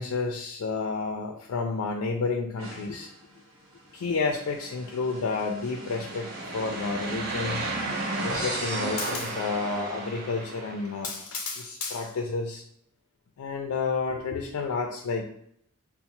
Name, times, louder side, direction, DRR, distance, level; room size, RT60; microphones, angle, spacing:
voice 1, 0.0-3.1 3.9-7.7 8.2-12.6 13.4-15.3, left 4 dB, 70° left, 2 dB, 0.3 m, -30 dB
sound 1, 2.6-10.2, equal, 70° right, 1.1 m, -39 dB
sound 2, 5.6-11.1, right 3 dB, 50° right, 0.8 m, -34 dB
4.2 x 2.0 x 2.8 m, 0.71 s
head